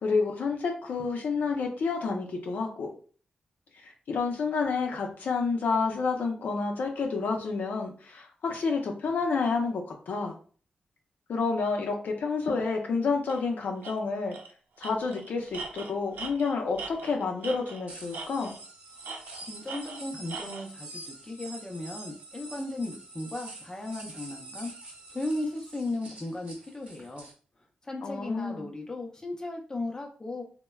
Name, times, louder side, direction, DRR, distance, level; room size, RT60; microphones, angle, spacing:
voice 1, 0.0-2.9 3.8-10.3 11.3-14.4 14.8-18.6 28.0-28.6, left 4 dB, 75° left, 1 dB, 0.6 m, -29 dB
Tools, 13.3-13.4 13.8-13.9 14.3-14.5 14.8-17.8 18.1-18.7 19.0-20.7, right 4 dB, 90° right, 0.4 m, -41 dB
sound 1, 17.9-27.3, right 2 dB, 45° right, 1.0 m, -46 dB
voice 2, 19.5-24.7 25.1-27.3 27.8-30.4, left 2 dB, 20° left, 0 dB, 0.6 m, -36 dB
3.1 x 2.1 x 2.2 m, 0.41 s
wide cardioid pair, 115°, 3 cm